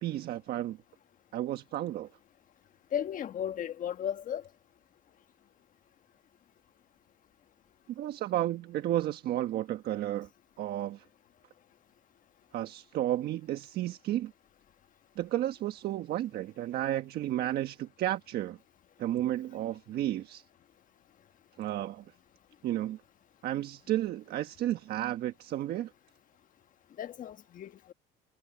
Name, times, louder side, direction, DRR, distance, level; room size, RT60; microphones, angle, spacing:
voice 1, 0.0-0.8 1.3-2.1 7.9-10.3 10.6-11.0 12.5-14.3 15.2-18.6 19.0-20.4 21.6-22.0 22.6-23.0 23.4-25.9, right 13 dB, 65° right, 1.4 m, -32 dB
voice 2, 2.9-4.4 27.0-27.9, left 9 dB, 50° left, 1.4 m, -35 dB
cardioid pair, 105°, 18 cm